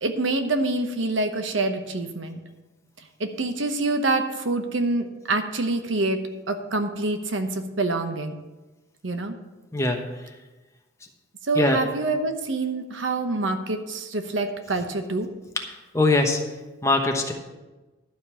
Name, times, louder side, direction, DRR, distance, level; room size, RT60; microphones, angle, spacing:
voice 1, 0.0-2.4 3.2-6.2 6.5-8.4 9.0-9.4 11.4-15.3, right 2 dB, 75° right, 7 dB, 1.0 m, -26 dB
voice 2, 9.7-10.2 11.5-11.8 15.6-16.4 16.8-17.3, left 2 dB, 15° left, 3 dB, 1.0 m, -22 dB
11.5 x 5.2 x 7.4 m, 1.2 s
head